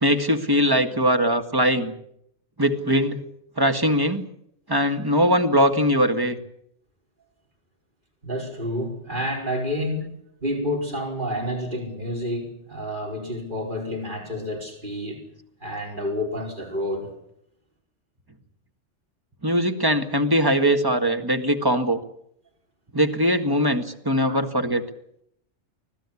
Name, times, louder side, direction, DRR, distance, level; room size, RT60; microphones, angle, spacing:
voice 1, 0.0-1.9 2.6-3.2 3.6-4.2 4.7-6.4 19.4-22.0 22.9-24.8, equal, 20° right, 6 dB, 1.8 m, -21 dB
voice 2, 8.2-10.1 10.4-15.2 15.6-17.1 24.3-24.4, left 1 dB, 40° right, 0 dB, 5.2 m, -29 dB
24.5 x 17.0 x 8.5 m, 0.74 s
omnidirectional pair, 1.2 m